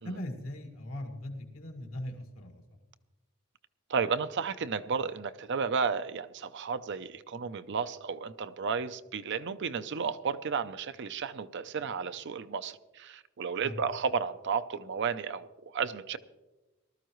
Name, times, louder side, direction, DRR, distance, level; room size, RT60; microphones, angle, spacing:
voice 1, 0.0-2.6 13.6-13.8, left 1 dB, 80° left, 3 dB, 2.0 m, -40 dB
voice 2, 3.9-16.2, right 5 dB, 55° right, 12 dB, 0.5 m, -33 dB
19.0 x 13.0 x 3.1 m, 1.1 s
head